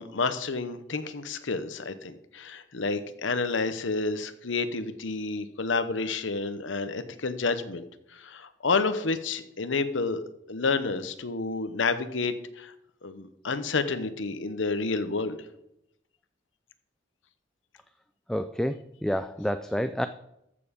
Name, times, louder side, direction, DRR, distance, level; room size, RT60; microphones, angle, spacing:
voice 1, 0.0-7.8 8.1-10.2 10.5-12.7 13.0-15.4, left 4 dB, 90° left, 10 dB, 0.9 m, -29 dB
voice 2, 18.3-20.1, equal, 5° left, 10 dB, 0.3 m, -29 dB
14.0 x 6.9 x 5.2 m, 0.80 s
head